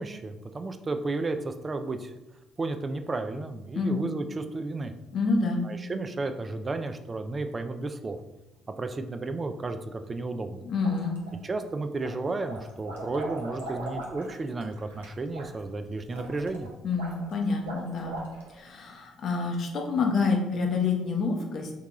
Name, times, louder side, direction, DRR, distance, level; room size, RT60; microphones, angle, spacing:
voice 1, 0.0-2.1 2.6-4.9 5.6-8.2 8.8-10.6 11.4-16.7, right 3 dB, 35° right, 8 dB, 0.3 m, -33 dB
voice 2, 5.1-5.6 10.7-11.2 16.8-18.2 18.5-21.7, left 4 dB, 55° left, 2 dB, 0.7 m, -27 dB
sound 1, 10.8-11.6 12.0-18.7, right 2 dB, 90° right, 0.5 m, -40 dB
3.6 x 2.3 x 2.9 m, 0.98 s
hypercardioid pair, 55°, 0 cm